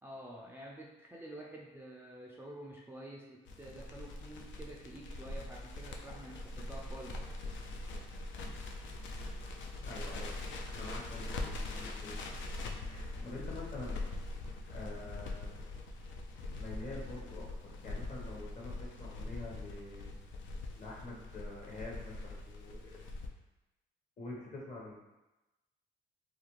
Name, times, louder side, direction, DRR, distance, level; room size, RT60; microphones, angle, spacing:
voice 1, 0.0-7.2 13.1-13.5, right 1 dB, 10° right, -3 dB, 0.3 m, -49 dB
Crackle, 3.4-23.3, left 2 dB, 65° left, 0.4 m, -42 dB
voice 2, 9.8-10.5 10.7-12.2 12.9-14.0 14.7-15.7 16.5-20.1 20.8-22.9 24.2-25.0, left 2 dB, 40° left, -3 dB, 0.9 m, -46 dB
2.4 x 2.2 x 3.0 m, 1.0 s
supercardioid pair, 65°, 21 cm